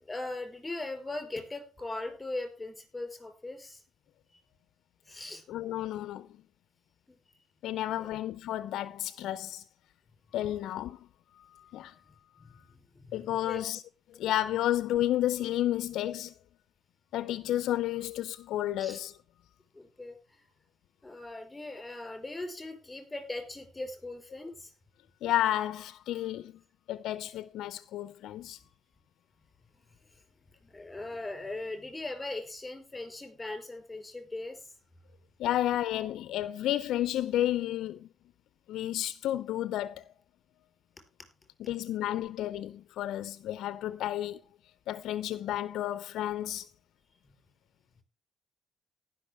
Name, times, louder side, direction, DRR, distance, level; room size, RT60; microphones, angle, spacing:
voice 1, 0.0-3.8 5.0-5.5 7.1-7.2 8.0-8.1 12.4-13.6 18.8-19.0 19.7-20.4 21.0-24.7 30.1-30.2 30.6-34.7 42.1-42.2 47.2-47.3, left 2 dB, 15° left, 4.3 m, -40 dB
voice 2, 5.5-6.3 7.6-9.6 10.3-11.0 11.4-11.9 13.1-13.8 14.1-16.3 17.1-19.1 25.2-26.5 26.9-28.6 35.4-38.1 38.7-40.0 41.6-44.4 44.9-46.7, left 13 dB, 85° left, 0.4 m, -31 dB
18.0 x 6.1 x 3.4 m
cardioid pair, 90°, 0 cm